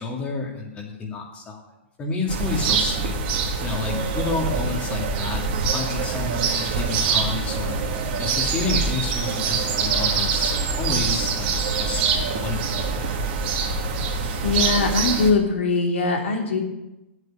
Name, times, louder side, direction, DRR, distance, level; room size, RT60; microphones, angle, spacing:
voice 1, 0.0-1.6 2.0-3.2 3.6-12.1 12.3-13.3, left 3 dB, 20° left, 0 dB, 2.5 m, -30 dB
sound 1, 2.3-15.3, right 5 dB, 45° right, 2.1 m, -24 dB
voice 2, 14.4-16.6, left 4 dB, 85° left, 2 dB, 3.0 m, -21 dB
8.7 x 8.2 x 9.0 m, 0.95 s
hypercardioid pair, 150°, 7 cm